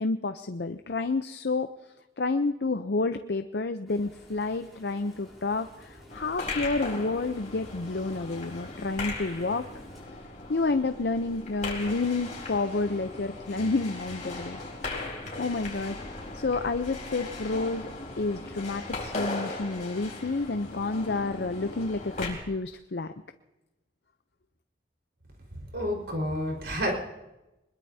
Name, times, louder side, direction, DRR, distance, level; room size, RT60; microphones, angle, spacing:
voice 1, 0.0-1.7 2.2-9.7 10.5-14.6 15.4-16.0 16.3-17.9 18.2-23.1, left 3 dB, 70° left, 7 dB, 0.6 m, -29 dB
sound 1, 3.9-10.0, left 1 dB, ahead, 6.0 m, -52 dB
sound 2, 6.1-22.3, left 2 dB, 40° left, 4.2 m, -38 dB
voice 2, 25.7-26.9, equal, 75° right, 0 dB, 4.6 m, -29 dB
24.0 x 21.5 x 2.8 m, 1.0 s
head